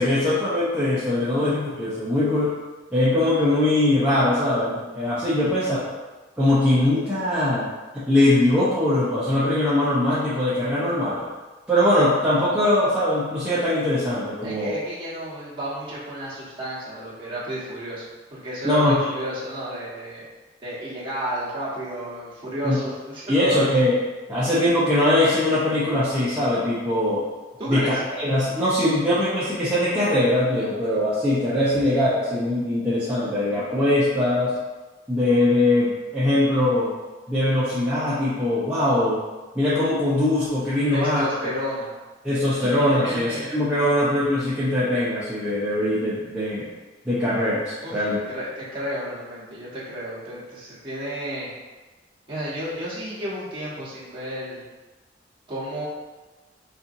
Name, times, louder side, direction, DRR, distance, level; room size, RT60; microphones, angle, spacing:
voice 1, 0.0-2.5 2.9-5.8 6.4-7.7 7.9-11.2 11.7-14.7 18.6-19.1 22.6-22.8 23.3-23.9 24.3-27.2 27.7-34.5 35.1-36.9 37.3-39.2 39.5-41.2 42.2-46.7 47.0-48.2, left 1 dB, 5° right, -12 dB, 0.7 m, -21 dB
voice 2, 14.4-18.0 18.3-20.2 20.6-23.7 27.6-28.0 31.7-31.8 40.9-41.9 42.6-43.5 47.8-51.5 52.3-54.6 55.5-55.8, equal, 30° right, -9 dB, 1.1 m, -32 dB
4.2 x 2.6 x 2.6 m, 1.2 s
head